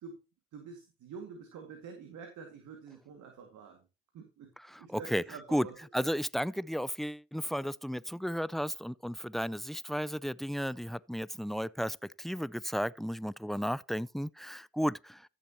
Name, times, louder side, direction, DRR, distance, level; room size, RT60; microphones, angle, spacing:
voice 1, 0.5-3.8 4.1-6.1, right 5 dB, 75° right, 2.2 m, -47 dB
voice 2, 4.6-5.2 5.5-5.7 5.9-15.3, equal, ahead, 0.5 m, -34 dB
14.5 x 7.5 x 2.9 m
supercardioid pair, 50°, 30 cm